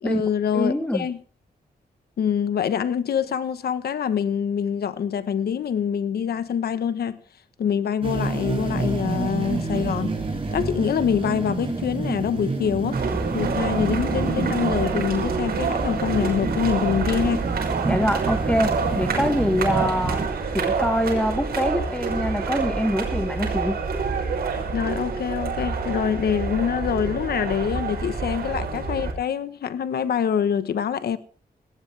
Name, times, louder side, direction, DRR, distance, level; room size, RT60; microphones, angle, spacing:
voice 1, 0.0-1.2 2.2-7.2 7.6-10.1 10.5-13.0 13.3-17.5 24.7-31.2, left 8 dB, 85° left, 1.1 m, -25 dB
voice 2, 0.5-1.1 17.9-20.2 20.5-23.8, equal, 5° left, 1.6 m, -24 dB
sound 1, 8.0-20.3, right 3 dB, 35° right, 6.2 m, -29 dB
sound 2, 12.9-29.1, right 5 dB, 85° right, 5.9 m, -27 dB
18.5 x 18.0 x 3.4 m
cardioid pair, 95°, 16 cm